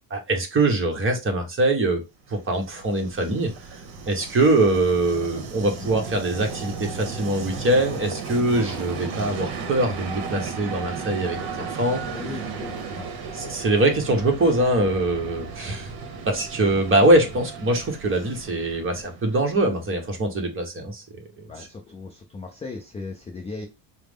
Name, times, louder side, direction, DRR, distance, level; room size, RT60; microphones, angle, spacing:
voice 1, 0.1-2.0 2.3-3.8 4.1-12.0 13.3-15.9 16.3-21.0 21.4-21.5, right 2 dB, 25° right, 1.0 m, -23 dB
Train, 2.3-20.1, right 5 dB, 50° right, 1.0 m, -35 dB
voice 2, 12.1-13.1 16.7-16.8 21.5-23.7, left 3 dB, 15° left, 0.4 m, -37 dB
4.6 x 2.1 x 3.5 m
cardioid pair, 115°, 50 cm